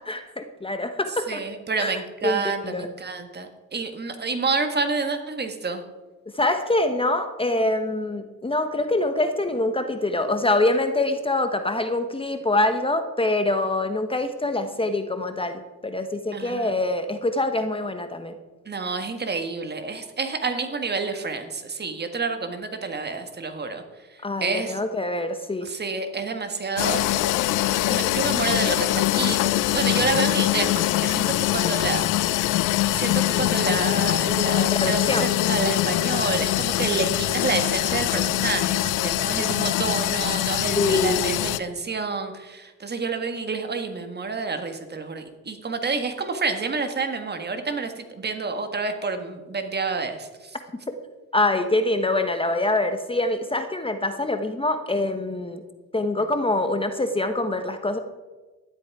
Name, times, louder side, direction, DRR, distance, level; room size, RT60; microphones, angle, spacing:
voice 1, 0.1-1.4 1.8-2.9 6.3-18.3 24.2-25.7 34.6-35.3 40.7-41.5 51.3-55.6 55.9-58.0, left 2 dB, 20° left, 7 dB, 1.0 m, -25 dB
voice 2, 1.3-5.8 16.3-16.7 18.6-23.8 24.4-24.8 25.6-27.0 27.8-32.5 32.9-50.3, right 4 dB, 35° right, 7 dB, 1.7 m, -29 dB
sound 1, 26.8-41.6, left 15 dB, 90° left, 0.6 m, -23 dB
13.0 x 11.0 x 4.8 m, 1.2 s
cardioid pair, 90°, 30 cm